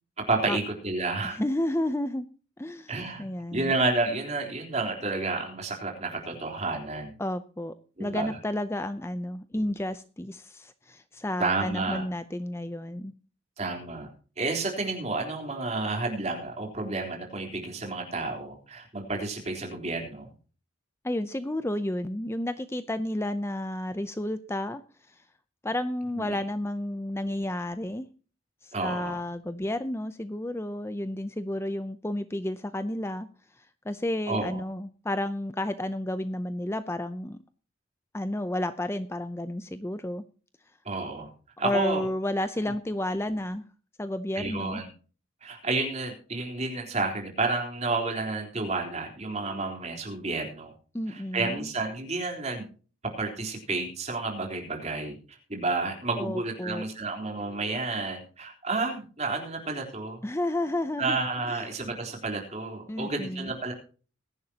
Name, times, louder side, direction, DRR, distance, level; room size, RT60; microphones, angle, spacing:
voice 1, 0.2-1.4 2.9-3.2 3.5-7.1 8.0-8.4 11.4-12.0 13.6-14.1 14.4-20.3 26.3-26.4 28.7-29.2 34.3-34.6 40.9-41.3 41.6-42.0 44.3-44.9 45.4-50.7 51.1-52.6 53.0-55.2 55.5-60.2 61.0-63.7, right 3 dB, 35° right, 2 dB, 3.8 m, -30 dB
voice 2, 1.2-2.3 2.6-3.7 7.2-7.7 8.0-13.1 21.0-24.8 25.1-25.2 25.6-28.1 28.6-33.3 33.6-37.4 38.1-40.2 41.6-43.6 44.0-44.8 50.9-51.7 56.2-56.8 60.2-61.2 61.5-61.7 62.9-63.5, left 1 dB, 15° left, 11 dB, 0.6 m, -31 dB
21.0 x 11.0 x 2.9 m, 0.38 s
head